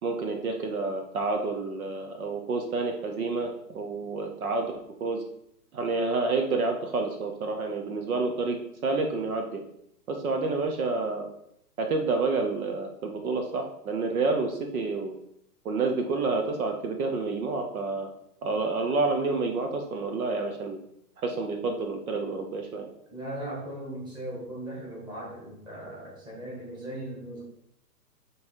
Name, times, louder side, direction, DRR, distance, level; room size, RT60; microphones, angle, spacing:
voice 1, 0.0-4.7 5.0-5.2 5.7-9.6 10.1-11.3 11.8-15.1 15.6-18.1 18.4-20.8 21.2-22.9, right 3 dB, 60° right, 4 dB, 1.1 m, -29 dB
voice 2, 23.1-27.4, right 1 dB, 10° right, -4 dB, 1.6 m, -38 dB
8.1 x 3.4 x 4.5 m, 0.73 s
hypercardioid pair, 150°, 48 cm